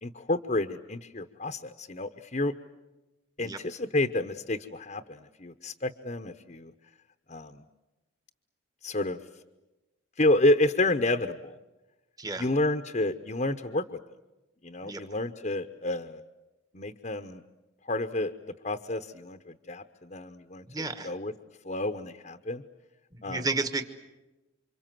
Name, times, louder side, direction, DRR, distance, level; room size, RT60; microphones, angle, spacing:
voice 1, 0.0-2.5 3.4-6.7 7.3-7.6 8.8-9.2 10.2-11.6 12.4-13.9 14.6-16.2 16.7-17.4 17.8-21.3 21.6-22.6 23.2-23.5, left 2 dB, 40° left, 7 dB, 0.9 m, -30 dB
voice 2, 20.7-21.1 23.1-23.8, right 3 dB, 20° right, 8 dB, 1.3 m, -32 dB
28.5 x 26.0 x 7.6 m, 1.1 s
head